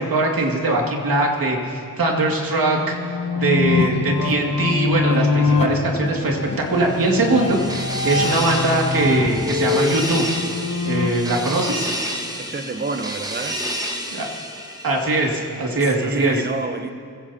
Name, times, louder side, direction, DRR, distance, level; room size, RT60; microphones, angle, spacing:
voice 1, 0.0-2.9 3.3-10.3 10.8-11.9 14.1-14.3 14.8-16.4, right 2 dB, 70° right, 0 dB, 2.5 m, -21 dB
sound 1, 2.2-11.1, left 4 dB, 65° left, 1.7 m, -24 dB
sound 2, 3.4-10.6, right 1 dB, 55° right, 1.4 m, -41 dB
sound 3, 6.5-15.6, equal, 10° right, 1.7 m, -30 dB
voice 2, 12.4-13.6 15.8-16.9, right 3 dB, 30° right, 9 dB, 0.8 m, -29 dB
25.0 x 16.0 x 2.9 m, 2.3 s
wide cardioid pair, 80°, 36 cm